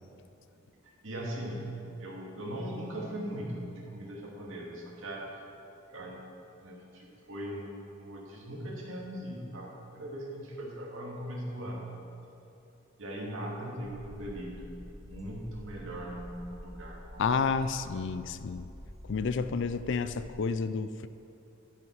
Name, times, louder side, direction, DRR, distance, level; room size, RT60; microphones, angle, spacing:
voice 1, 1.0-1.7 2.0-5.4 5.9-6.2 6.6-11.9 13.0-14.7 15.0-17.3, right 1 dB, 65° right, -3 dB, 2.4 m, -39 dB
sound 1, 13.8-20.3, equal, ahead, 1.3 m, -48 dB
voice 2, 17.2-18.7 19.1-21.1, left 5 dB, 55° left, 12 dB, 0.4 m, -30 dB
11.0 x 10.5 x 4.7 m, 2.7 s
head